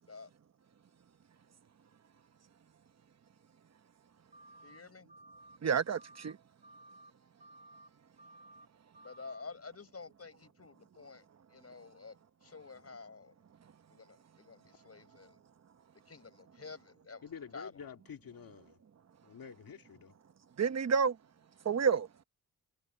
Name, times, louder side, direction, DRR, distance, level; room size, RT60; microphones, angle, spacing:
sound 1, 4.3-4.8 5.1-5.6 5.8-6.3 6.6-7.1 7.4-7.9 8.2-8.7 8.9-9.4, right 1 dB, 25° right, 3.0 m, -56 dB
voice 1, 4.6-5.1 9.0-11.2 11.5-13.3 13.9-15.4 16.1-17.3 17.5-17.7, left 4 dB, 45° left, 5.8 m, -50 dB
voice 2, 5.6-6.4 20.6-21.2 21.6-22.1, right 6 dB, 50° right, 0.9 m, -29 dB
voice 3, 17.2-18.8 19.2-20.1, left 7 dB, 85° left, 2.4 m, -48 dB
cardioid pair, 75°, 34 cm